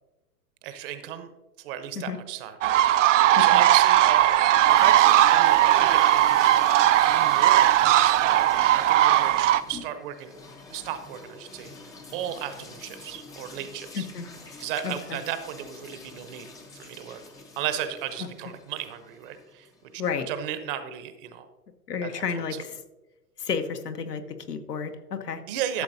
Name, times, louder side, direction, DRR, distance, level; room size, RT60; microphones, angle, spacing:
voice 1, 0.6-1.3 1.6-2.6 3.4-4.4 4.7-6.6 7.0-8.4 8.7-10.3 10.7-14.1 14.6-16.5 16.7-17.2 17.6-21.5 22.0-22.6 25.5-25.8, right 10 dB, 35° right, 10 dB, 0.8 m, -34 dB
sound 1, 2.6-9.6, right 13 dB, 55° right, 0.5 m, -18 dB
sound 2, 4.1-20.1, left 3 dB, 10° left, 0.5 m, -46 dB
voice 2, 13.9-14.3 14.8-15.2 20.0-20.3 21.9-22.6 23.4-25.4, left 6 dB, 85° left, 7 dB, 1.1 m, -31 dB
12.5 x 7.1 x 2.7 m, 1.1 s
hypercardioid pair, 115°, 47 cm